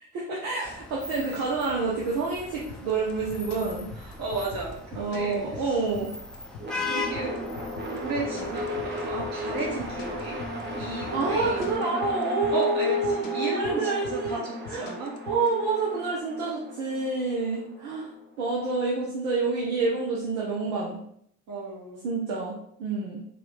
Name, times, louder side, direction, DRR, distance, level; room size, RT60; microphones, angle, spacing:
voice 1, 0.1-3.9 5.0-6.1 10.8-14.4 14.7-14.9 15.3-18.1 18.4-21.0 22.0-23.2, right 3 dB, 60° right, -4 dB, 1.0 m, -28 dB
Vehicle horn car horn honking / Traffic noise roadway noise, 0.6-11.8, left 3 dB, ahead, 0.6 m, -40 dB
sound 1, 2.7-15.5, left 5 dB, 60° left, 0.7 m, -43 dB
voice 2, 4.0-5.8 6.7-7.4 7.9-10.4 10.7-12.0 12.5-15.2 21.5-22.1, right 2 dB, 45° right, -3 dB, 1.7 m, -34 dB
sound 2, 6.6-18.7, equal, 20° right, 0.9 m, -36 dB
4.6 x 2.4 x 3.7 m, 0.70 s
figure-of-eight pair, 55°, 49 cm